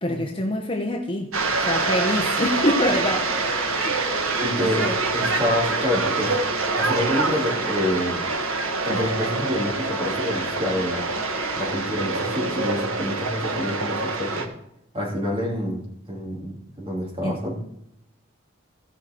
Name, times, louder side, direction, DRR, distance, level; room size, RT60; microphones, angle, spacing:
voice 1, 0.0-1.3 1.6-3.3 3.7-4.1 4.5-5.3 17.2-17.4, left 1 dB, 25° left, 3 dB, 1.0 m, -26 dB
sound 1, 1.3-14.5, right 3 dB, 80° right, 1.5 m, -25 dB
voice 2, 4.4-6.3 6.8-8.2 8.8-11.0 11.6-14.4 14.9-17.6, equal, 25° right, -2 dB, 3.1 m, -27 dB
16.5 x 5.7 x 4.5 m, 0.78 s
head